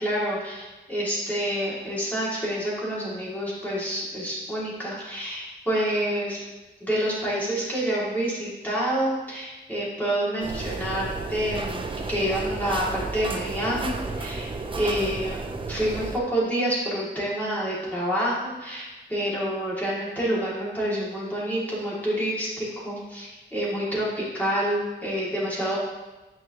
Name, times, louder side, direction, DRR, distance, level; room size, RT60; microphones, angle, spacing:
voice 1, 0.0-6.4 6.8-14.5 14.8-15.4 15.7-25.8, equal, 10° left, -8 dB, 2.2 m, -28 dB
Shoveling coal, 10.4-16.2, right 3 dB, 25° right, 0.4 m, -32 dB
9.2 x 5.1 x 2.9 m, 1.1 s
wide cardioid pair, 160°, 20 cm